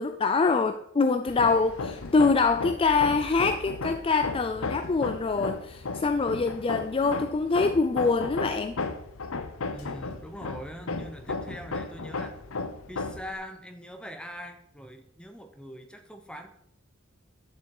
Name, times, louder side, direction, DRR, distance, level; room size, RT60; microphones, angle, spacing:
voice 1, 0.0-8.8, left 4 dB, 25° left, 8 dB, 0.4 m, -25 dB
Hammer, 1.3-13.3, left 3 dB, 75° left, 0.7 m, -35 dB
voice 2, 9.7-12.4 12.9-16.5, equal, 5° left, 6 dB, 0.9 m, -42 dB
9.4 x 7.3 x 4.8 m, 0.73 s
head